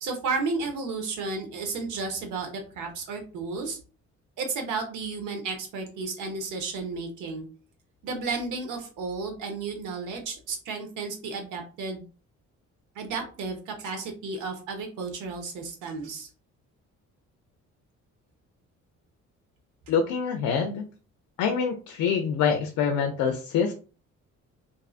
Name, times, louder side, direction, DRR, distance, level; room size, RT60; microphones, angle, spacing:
voice 1, 0.0-3.8 4.4-7.5 8.0-12.0 12.9-16.3, right 4 dB, 85° right, 4 dB, 0.9 m, -33 dB
voice 2, 19.9-20.8 21.4-23.7, left 6 dB, 85° left, 5 dB, 0.5 m, -25 dB
2.6 x 2.5 x 2.4 m, 0.36 s
cardioid pair, 90°, 30 cm